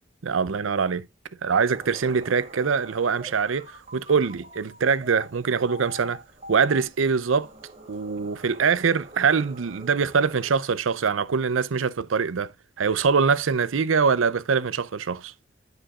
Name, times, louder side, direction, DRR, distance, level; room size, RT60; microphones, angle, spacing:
voice 1, 0.2-1.1 1.4-3.7 3.9-6.2 6.5-7.5 7.9-12.5 12.8-15.3, right 5 dB, 90° right, 0.6 m, -23 dB
sound 1, 1.7-10.5, right 1 dB, 35° right, 2.4 m, -45 dB
14.5 x 5.0 x 2.4 m
head